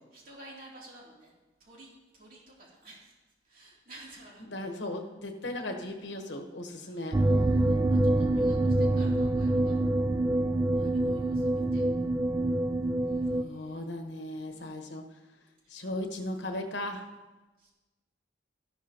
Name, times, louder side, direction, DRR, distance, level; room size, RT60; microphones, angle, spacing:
voice 1, 0.0-1.3 1.6-3.1 3.5-4.5 6.7-9.8 10.7-11.8 13.0-13.9 14.5-15.0 15.6-15.8 17.6-17.7, right 1 dB, 45° right, -4 dB, 3.1 m, -53 dB
voice 2, 4.4-7.2 13.4-15.0 15.7-17.1, left 1 dB, 65° left, 4 dB, 1.3 m, -37 dB
sound 1, 7.1-13.4, right 2 dB, 15° right, 0.3 m, -26 dB
13.5 x 12.0 x 3.0 m, 1.1 s
head